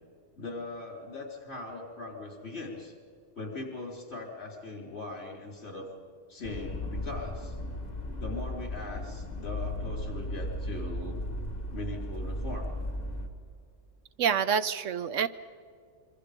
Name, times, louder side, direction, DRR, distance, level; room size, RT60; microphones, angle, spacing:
voice 1, 0.4-2.9 3.3-5.9 6.3-7.6 8.2-11.2 11.7-12.7, left 2 dB, 55° left, 1 dB, 4.4 m, -40 dB
sound 1, 6.4-13.3, left 1 dB, 35° left, 2.2 m, -36 dB
voice 2, 14.2-15.3, right 7 dB, 80° right, 13 dB, 1.1 m, -27 dB
26.5 x 24.5 x 5.2 m, 2.2 s
omnidirectional pair, 1.3 m